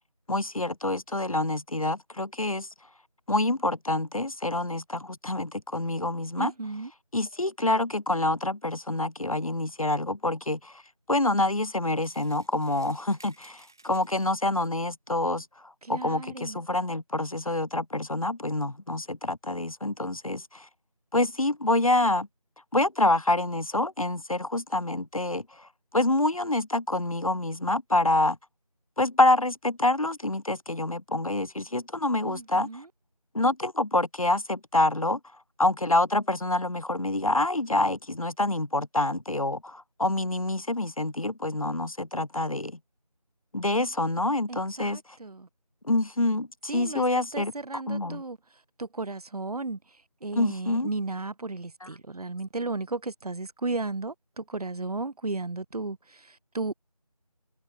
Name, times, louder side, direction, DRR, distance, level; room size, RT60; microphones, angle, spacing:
voice 1, 0.3-2.7 3.3-6.5 7.1-10.8 11.1-20.7 21.1-22.3 22.7-28.4 29.0-32.8 33.3-35.2 35.6-42.8 43.5-45.0 45.8-48.2 50.4-50.9 51.8-51.9, left 2 dB, 65° left, 1.2 m, -27 dB
voice 2, 6.4-6.9 15.8-16.6 32.2-32.9 44.5-45.5 46.7-47.0 47.3-48.4 48.8-49.8 50.2-56.7, right 3 dB, 75° right, 0.7 m, -34 dB
sound 1, 12.0-14.9, right 2 dB, 5° right, 2.3 m, -57 dB
figure-of-eight pair, 180°, 20 cm